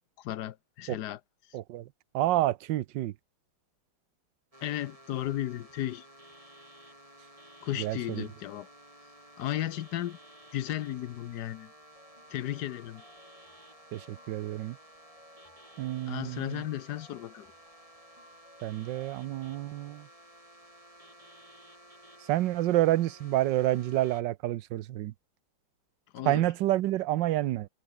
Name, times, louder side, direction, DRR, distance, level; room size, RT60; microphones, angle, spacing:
voice 1, 0.2-1.2 4.6-6.0 7.6-8.7 9.4-10.2 10.5-11.7 12.3-13.0 16.1-17.5 26.1-26.5, left 13 dB, 65° left, 1.2 m, -34 dB
voice 2, 1.5-1.9 2.1-3.1 7.8-8.3 13.9-14.8 15.8-16.6 18.6-20.1 22.2-25.1 26.2-27.7, right 14 dB, 75° right, 1.3 m, -29 dB
sound 1, 4.5-24.2, right 1 dB, 15° right, 8.2 m, -54 dB
sound 2, 12.0-20.0, left 1 dB, 15° left, 4.7 m, -60 dB
omnidirectional pair, 2.1 m